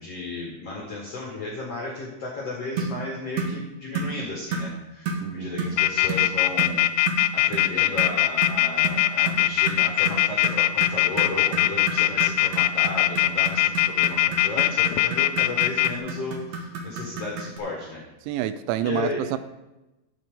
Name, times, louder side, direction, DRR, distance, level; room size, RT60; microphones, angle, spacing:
voice 1, 0.0-6.9 7.3-18.0 18.3-18.4 18.8-19.2, left 3 dB, 65° left, -3 dB, 1.6 m, -34 dB
sound 1, 2.8-3.0 3.4-3.6 3.9-4.2 4.5-4.7 5.1-5.3 5.6-5.8 6.1-6.3 6.6-6.8 7.1-7.3 7.5-7.7 8.0-17.6, right 4 dB, 65° right, 1.7 m, -31 dB
voice 2, 5.2-5.6 18.3-19.4, right 12 dB, 85° right, 13 dB, 3.0 m, -28 dB
sound 2, 5.8-15.9, left 15 dB, 85° left, 2.7 m, -20 dB
12.5 x 8.5 x 3.7 m, 1.0 s
omnidirectional pair, 5.2 m